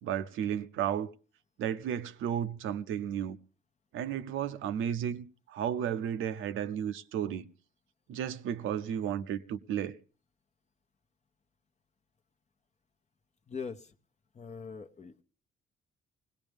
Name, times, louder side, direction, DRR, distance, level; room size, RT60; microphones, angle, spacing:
voice 1, 0.0-1.1 1.6-3.4 3.9-7.5 8.1-10.0, right 9 dB, 85° right, 0.7 m, -33 dB
voice 2, 13.5-13.9 14.3-15.2, left 5 dB, 35° left, 0.8 m, -42 dB
19.5 x 17.5 x 3.5 m
cardioid pair, 90°, 20 cm